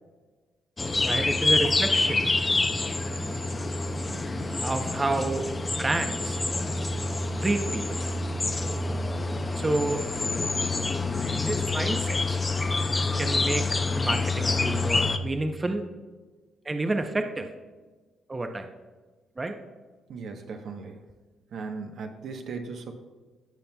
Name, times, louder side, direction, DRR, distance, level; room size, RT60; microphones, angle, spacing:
sound 1, 0.8-15.2, left 3 dB, 25° left, 0.6 m, -27 dB
voice 1, 1.0-2.3 4.6-6.4 7.4-8.0 9.6-10.1 11.3-12.4 13.2-13.7 14.0-15.8 16.7-17.5 18.3-18.7 19.4-19.6, right 2 dB, 25° right, 6 dB, 0.6 m, -29 dB
voice 2, 20.1-21.0 21.5-22.9, right 4 dB, 65° right, 4 dB, 0.9 m, -37 dB
16.5 x 5.7 x 2.3 m, 1.3 s
cardioid pair, 90°, 0 cm